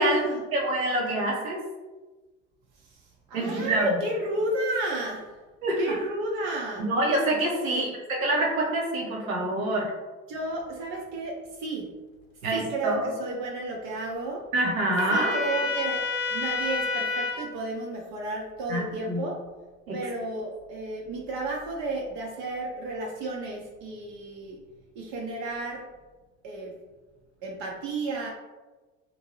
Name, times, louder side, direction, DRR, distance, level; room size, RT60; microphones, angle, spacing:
voice 1, 0.0-0.4 2.8-3.0 3.3-5.3 5.8-6.9 7.6-7.9 10.3-12.0 12.5-14.5 15.1-19.4 19.9-24.6 25.0-25.8 26.4-26.7 27.4-28.3, right 2 dB, 55° right, -1 dB, 0.6 m, -32 dB
voice 2, 0.5-1.6 3.3-3.9 5.6-5.9 6.9-9.9 12.4-13.1 14.5-15.3 18.7-19.2 19.9-20.0, right 1 dB, 85° right, -2 dB, 0.9 m, -26 dB
Trumpet, 15.0-17.5, left 4 dB, 65° left, 0.6 m, -29 dB
2.6 x 2.2 x 2.9 m, 1.2 s
hypercardioid pair, 75°, 40 cm